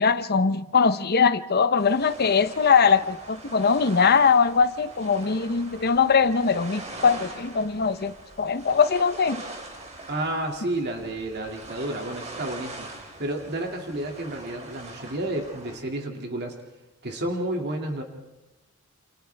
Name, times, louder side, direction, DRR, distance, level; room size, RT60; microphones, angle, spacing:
voice 1, 0.0-9.4, left 5 dB, 45° left, 12 dB, 0.8 m, -21 dB
sound 1, 1.8-15.8, right 2 dB, 30° right, 3.4 m, -42 dB
voice 2, 10.1-12.9 13.2-16.5 17.0-18.0, right 1 dB, 50° right, 2 dB, 2.4 m, -31 dB
29.0 x 28.5 x 3.5 m, 1.1 s
head